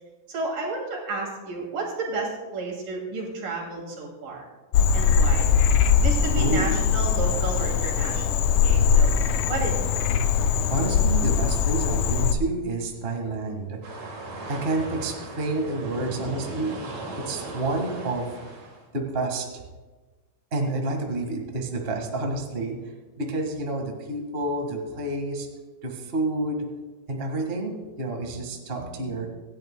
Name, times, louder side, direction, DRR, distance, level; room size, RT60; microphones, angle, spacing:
voice 1, 0.3-4.4 4.9-5.5 5.9-9.2 9.5-9.9, right 3 dB, 85° right, -1 dB, 4.2 m, -32 dB
Frog, 4.7-12.3, left 6 dB, 75° left, 2.0 m, -21 dB
voice 2, 6.4-6.9 10.7-13.8 14.5-16.7 17.2-18.3 18.9-19.5 20.5-22.8 23.2-25.5 25.8-26.6 27.1-29.3, right 2 dB, 30° right, 2 dB, 1.2 m, -29 dB
sound 1, 13.8-18.8, right 2 dB, 55° right, 3.3 m, -37 dB
25.0 x 10.5 x 2.2 m, 1.3 s
omnidirectional pair, 3.6 m